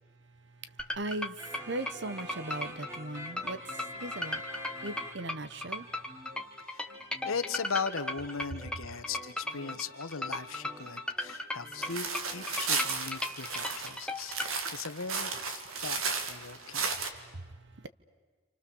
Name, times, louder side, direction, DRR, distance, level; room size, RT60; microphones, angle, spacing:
voice 1, 0.6-4.4 4.8-5.9 17.1-17.9, right 2 dB, 55° right, 1.0 m, -39 dB
sound 1, 0.8-14.5, left 1 dB, 5° left, 1.3 m, -36 dB
sound 2, 1.4-5.4 5.7-13.3, left 1 dB, 15° right, 2.0 m, -47 dB
voice 2, 7.2-16.0 16.3-17.1, left 5 dB, 80° left, 1.2 m, -38 dB
sound 3, 11.8-17.1, right 5 dB, 80° right, 2.1 m, -34 dB
28.0 x 28.0 x 7.1 m
head